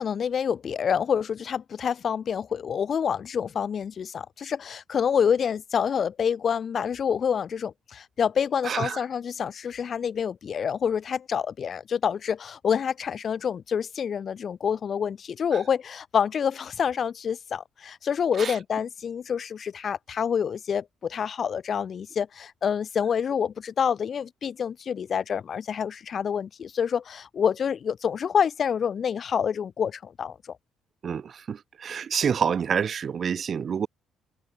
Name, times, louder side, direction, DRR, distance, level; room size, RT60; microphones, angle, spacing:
voice 1, 0.0-30.6, left 7 dB, 35° left, 7.4 m, -27 dB
voice 2, 8.6-9.0 18.4-18.5 31.0-33.9, right 7 dB, 35° right, 2.9 m, -27 dB
cardioid pair, 175°, 0 cm